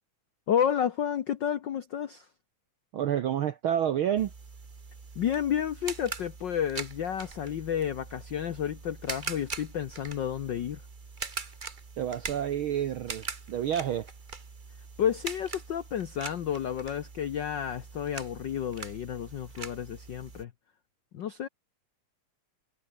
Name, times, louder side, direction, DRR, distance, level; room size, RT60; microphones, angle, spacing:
voice 1, 0.5-2.3 5.2-10.8 15.0-20.5 21.1-21.5, left 9 dB, 85° left, 1.0 m, -31 dB
voice 2, 2.9-4.3 12.0-14.1, right 10 dB, 70° right, 1.2 m, -29 dB
sound 1, 4.2-20.4, right 4 dB, 55° right, 0.5 m, -42 dB
omnidirectional pair, 3.4 m